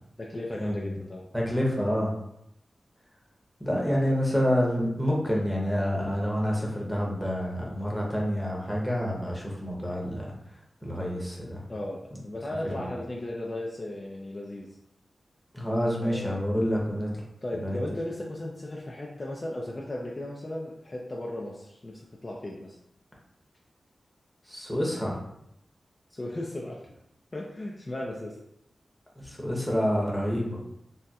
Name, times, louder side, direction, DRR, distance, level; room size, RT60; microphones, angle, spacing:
voice 1, 0.2-1.3 11.7-14.7 16.0-16.6 17.4-22.8 26.1-26.8 27.3-28.4, left 1 dB, 35° left, -2 dB, 0.4 m, -36 dB
voice 2, 1.3-2.1 3.6-10.4 10.8-11.6 15.5-17.1 17.6-17.8 24.5-25.2 29.2-30.6, equal, ahead, -3 dB, 0.8 m, -28 dB
4.1 x 2.1 x 2.3 m, 0.77 s
wide cardioid pair, 80°, 0 cm